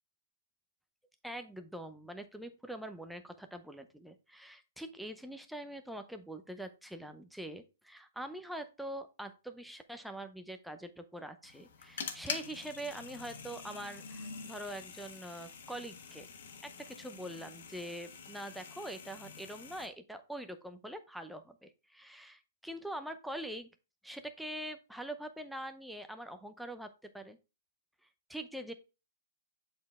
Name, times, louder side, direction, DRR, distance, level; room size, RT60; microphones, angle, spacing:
voice 1, 1.2-16.3 16.6-23.7 24.0-27.4 28.3-28.7, right 1 dB, ahead, 7 dB, 0.6 m, -44 dB
sound 1, 11.4-19.9, left 6 dB, 70° left, 1.5 m, -46 dB
7.6 x 4.3 x 3.5 m, 0.30 s
hypercardioid pair, 150°, 0 cm